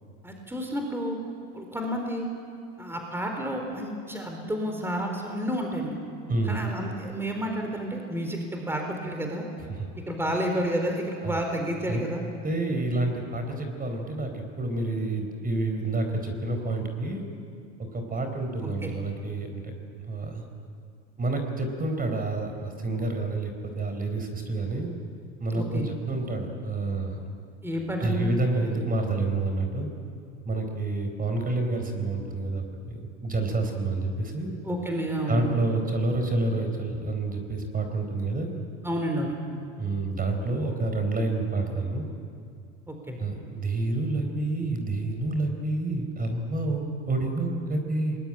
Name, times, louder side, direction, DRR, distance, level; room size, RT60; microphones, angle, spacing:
voice 1, 0.2-1.2 1.5-2.3 2.8-6.0 6.4-9.5 10.1-12.2 18.6-18.9 25.5-25.9 27.6-28.3 34.6-35.5 38.8-39.3 42.9-43.2, equal, 5° right, 2 dB, 4.1 m, -30 dB
voice 2, 12.4-17.2 17.8-19.6 20.1-20.4 21.2-23.5 23.8-24.9 25.4-27.2 28.0-29.9 30.5-34.6 35.3-38.6 39.8-42.1 43.2-48.2, right 2 dB, 25° right, 5 dB, 4.4 m, -28 dB
24.0 x 21.5 x 10.0 m, 2.3 s
supercardioid pair, 105°, 38 cm